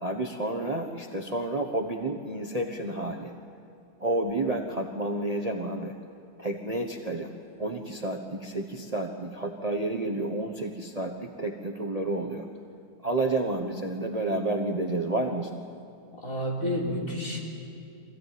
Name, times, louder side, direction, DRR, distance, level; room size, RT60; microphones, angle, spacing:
voice 1, 0.0-3.3 4.0-5.9 6.4-12.5 13.0-15.6, right 2 dB, 25° right, 3 dB, 1.2 m, -30 dB
voice 2, 16.1-17.4, equal, 50° left, -3 dB, 4.4 m, -30 dB
25.0 x 16.0 x 9.4 m, 2.7 s
omnidirectional pair, 1.8 m